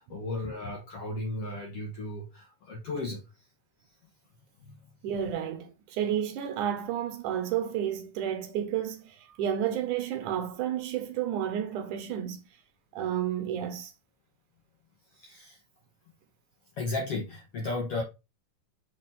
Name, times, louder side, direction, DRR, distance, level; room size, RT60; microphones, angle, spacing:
voice 1, 0.0-3.2 4.6-4.8 15.1-15.6 16.8-18.0, left 2 dB, 65° left, 1.5 m, -35 dB
voice 2, 5.0-12.5 12.9-13.9, right 10 dB, 75° right, 2.0 m, -31 dB
5.7 x 4.3 x 4.1 m
omnidirectional pair, 4.2 m